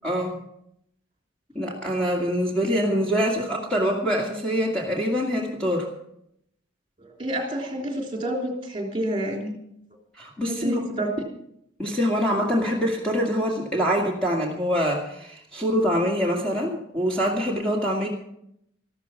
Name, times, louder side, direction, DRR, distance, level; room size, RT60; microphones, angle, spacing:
voice 1, 0.0-0.3 1.5-5.9 10.2-10.8 11.8-18.1, equal, 5° left, -2 dB, 2.2 m, -24 dB
voice 2, 7.2-9.6 10.5-11.1, right 1 dB, 25° right, 1 dB, 3.3 m, -28 dB
13.5 x 13.0 x 5.8 m, 0.76 s
head